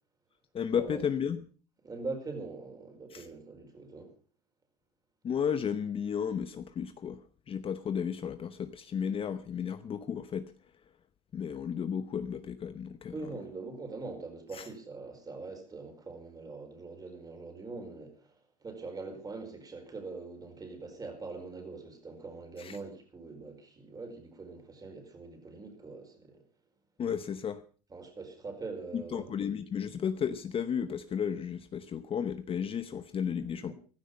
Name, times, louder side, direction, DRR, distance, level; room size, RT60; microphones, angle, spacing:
voice 1, 0.5-1.4 3.1-3.3 5.2-10.5 11.3-13.3 14.5-14.7 22.6-22.8 27.0-27.6 28.9-33.7, left 7 dB, 30° left, 0.9 m, -33 dB
voice 2, 1.8-4.1 13.1-18.3 18.6-26.4 27.9-29.4 33.7-33.8, right 3 dB, 20° right, 4.7 m, -43 dB
15.0 x 13.5 x 5.4 m
supercardioid pair, 110°, 18 cm